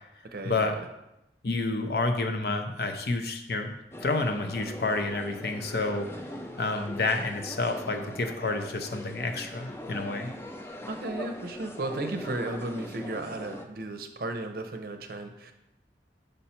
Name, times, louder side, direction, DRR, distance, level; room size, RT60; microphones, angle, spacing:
voice 1, 0.2-0.8 10.9-15.5, right 2 dB, 55° right, 6 dB, 0.6 m, -35 dB
voice 2, 1.4-6.1 6.6-10.3, left 3 dB, 60° left, 6 dB, 0.6 m, -29 dB
sound 1, 3.9-13.7, left 1 dB, 15° left, 0.4 m, -41 dB
5.6 x 5.4 x 4.3 m, 0.89 s
head